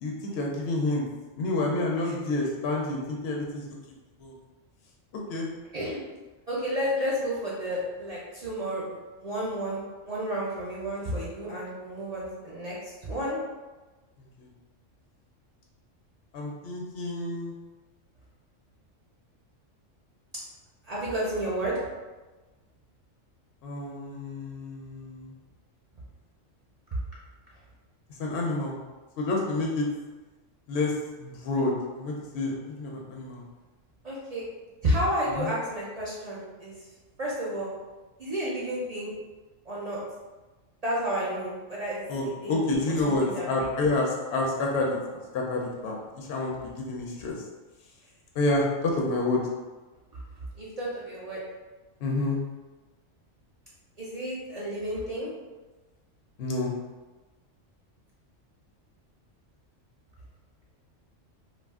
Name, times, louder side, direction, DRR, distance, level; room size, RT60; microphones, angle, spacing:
voice 1, 0.0-1.0 1.4-3.6 4.2-4.3 5.3-5.5 16.3-17.5 23.6-25.3 28.2-28.8 29.2-29.9 30.7-30.9 31.2-33.4 35.4-35.5 42.1-45.0 45.3-47.4 48.4-49.4 52.0-52.4 56.4-56.7, left 2 dB, 65° left, -1 dB, 0.8 m, -28 dB
voice 2, 6.5-8.8 9.2-12.7 13.0-13.4 20.9-21.8 34.0-34.4 34.8-36.7 37.2-37.7 38.2-39.1 39.7-40.0 40.8-42.0 42.4-42.7 43.0-43.7 50.6-51.4 54.0-55.3, equal, 45° right, -6 dB, 0.5 m, -31 dB
2.4 x 2.4 x 3.5 m, 1.2 s
omnidirectional pair, 1.3 m